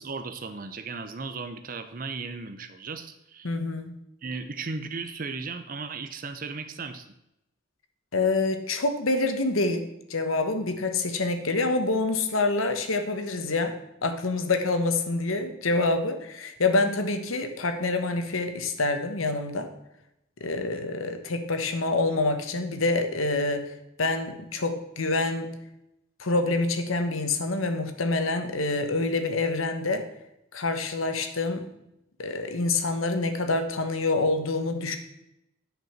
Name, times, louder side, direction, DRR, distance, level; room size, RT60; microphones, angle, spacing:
voice 1, 0.0-3.5 4.2-7.1, right 4 dB, 40° right, 9 dB, 0.6 m, -36 dB
voice 2, 3.4-4.0 8.1-13.8 14.0-19.7 20.4-23.7 24.0-25.5 26.2-30.0 30.5-31.7 32.2-35.0, left 3 dB, 90° left, 7 dB, 1.2 m, -26 dB
9.2 x 5.3 x 7.3 m, 0.84 s
head